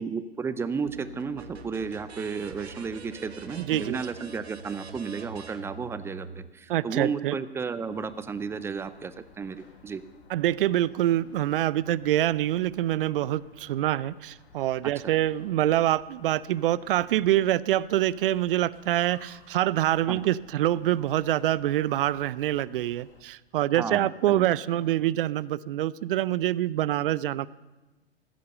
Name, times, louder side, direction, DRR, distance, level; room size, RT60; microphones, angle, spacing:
voice 1, 0.0-10.0 20.1-20.3 23.8-24.5, right 5 dB, 10° right, 14 dB, 0.4 m, -33 dB
sound 1, 0.9-6.5, right 4 dB, 85° right, 1.1 m, -44 dB
voice 2, 3.6-4.0 6.7-7.4 10.3-27.5, right 13 dB, 60° right, 21 dB, 0.5 m, -25 dB
sound 2, 7.8-23.2, left 4 dB, 60° left, 1.9 m, -56 dB
13.5 x 10.5 x 6.6 m, 1.1 s
figure-of-eight pair, 100°, 31 cm